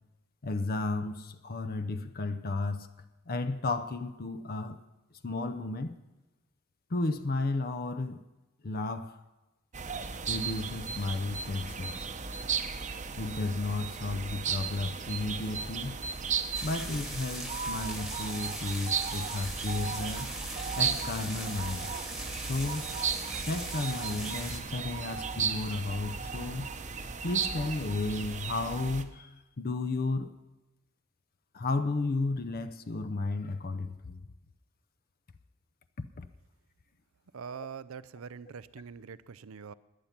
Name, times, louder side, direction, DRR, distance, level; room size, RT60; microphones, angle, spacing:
voice 1, 0.4-2.9 3.3-4.8 5.2-6.0 6.9-8.2 8.6-9.2 10.3-12.1 13.2-16.0 16.6-20.3 20.8-22.0 22.3-22.9 23.5-26.7 27.2-30.3 31.5-34.2 36.0-36.3, left 3 dB, 45° left, 0.7 m, -33 dB
sound 1, 9.7-29.0, right 6 dB, 35° right, 0.8 m, -35 dB
sound 2, 16.5-24.6, right 1 dB, ahead, 1.4 m, -41 dB
voice 2, 37.3-39.7, right 6 dB, 85° right, 0.5 m, -43 dB
17.0 x 11.0 x 5.9 m
head